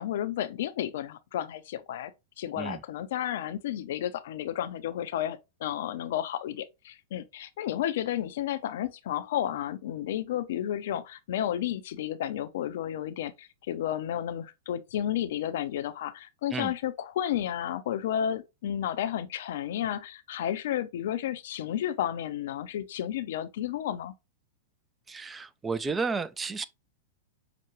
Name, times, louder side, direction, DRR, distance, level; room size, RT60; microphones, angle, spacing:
voice 1, 0.0-2.1 2.4-24.1, left 11 dB, 65° left, 0.5 m, -32 dB
voice 2, 25.1-26.6, right 4 dB, 15° right, 0.4 m, -32 dB
5.8 x 2.2 x 3.0 m
hypercardioid pair, 100°, 0 cm